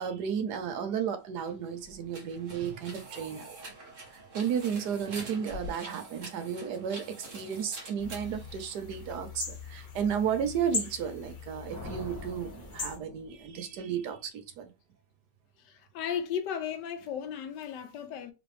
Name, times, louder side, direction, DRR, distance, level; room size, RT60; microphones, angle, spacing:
voice 1, 0.0-3.6 4.1-14.7, right 8 dB, 75° right, 1.3 m, -33 dB
sound 1, 1.3-9.2, right 1 dB, 50° right, 1.6 m, -46 dB
sound 2, 8.0-13.0, left 4 dB, 55° left, 1.5 m, -40 dB
sound 3, 11.7-13.9, equal, 10° right, 1.0 m, -45 dB
voice 2, 15.6-18.3, left 8 dB, 85° left, 1.4 m, -35 dB
3.9 x 3.4 x 3.1 m
omnidirectional pair, 1.8 m